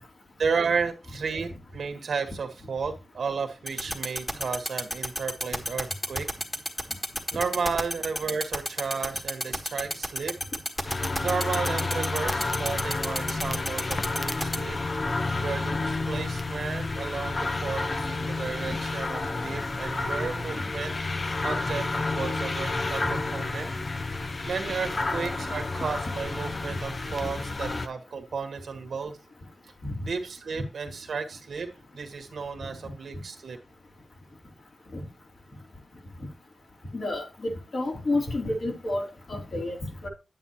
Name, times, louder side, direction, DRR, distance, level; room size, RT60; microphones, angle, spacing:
voice 1, 0.4-6.3 7.3-10.4 11.2-15.1 15.4-23.7 24.0-29.2 30.0-31.7 31.9-33.6, right 5 dB, 80° right, 6 dB, 1.6 m, -33 dB
sound 1, 3.7-14.6, equal, 10° left, 1.5 m, -29 dB
sound 2, 10.8-27.9, left 3 dB, 40° left, 0.6 m, -30 dB
voice 2, 36.9-39.8 40.0-40.1, left 2 dB, 55° left, 0 dB, 3.4 m, -30 dB
9.2 x 9.1 x 3.0 m, 0.28 s
wide cardioid pair, 105°, 0 cm